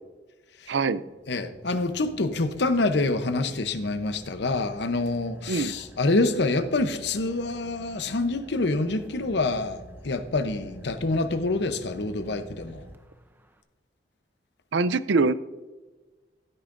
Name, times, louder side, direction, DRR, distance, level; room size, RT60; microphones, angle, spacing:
Car / Idling, 0.7-13.6, equal, 10° right, 0.6 m, -48 dB
voice 1, 0.7-1.0 5.5-5.7 14.7-15.3, right 4 dB, 75° right, 15 dB, 0.5 m, -23 dB
voice 2, 1.3-12.8, left 2 dB, 65° left, 10 dB, 0.8 m, -26 dB
15.0 x 9.0 x 2.6 m, 1.2 s
head